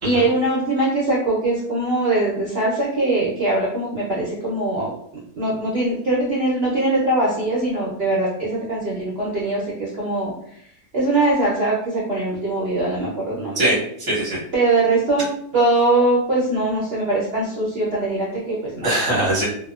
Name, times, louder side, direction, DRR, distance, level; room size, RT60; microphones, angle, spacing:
voice 1, 0.0-4.9 5.4-10.3 10.9-13.7 14.5-19.3, right 2 dB, 60° right, -6 dB, 0.6 m, -22 dB
voice 2, 13.5-14.4 18.8-19.5, right 1 dB, 20° right, -6 dB, 0.6 m, -22 dB
2.7 x 2.1 x 2.3 m, 0.69 s
omnidirectional pair, 1.8 m